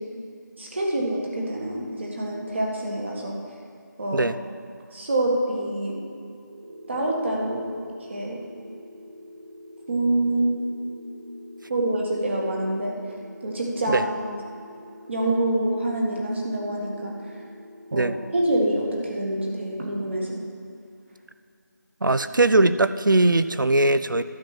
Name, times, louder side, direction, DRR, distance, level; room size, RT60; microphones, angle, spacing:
voice 1, 0.6-3.3 4.0-4.3 4.9-5.9 6.9-7.6 8.1-8.4 9.9-10.6 11.7-12.9 13.4-14.4 15.1-17.1 17.9-20.4, right 1 dB, 35° right, -2 dB, 1.7 m, -26 dB
sound 1, 6.5-18.3, left 1 dB, 55° right, 2.8 m, -46 dB
voice 2, 22.0-24.2, right 2 dB, 90° right, 13 dB, 0.5 m, -20 dB
12.0 x 5.4 x 7.5 m, 2.5 s
figure-of-eight pair, 165°, 10 cm